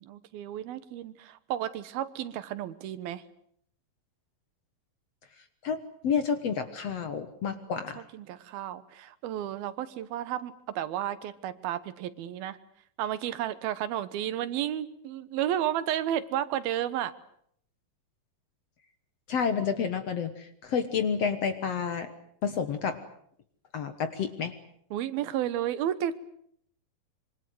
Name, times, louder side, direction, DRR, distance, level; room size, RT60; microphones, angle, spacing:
voice 1, 0.0-3.2 7.5-7.7 8.0-12.6 13.0-17.1 24.9-26.2, right 11 dB, 80° right, 14 dB, 3.0 m, -32 dB
voice 2, 5.6-8.0 19.3-22.1 22.4-23.0 23.7-24.5, left 6 dB, 60° left, 10 dB, 1.9 m, -30 dB
25.5 x 24.5 x 7.9 m, 0.67 s
omnidirectional pair, 4.2 m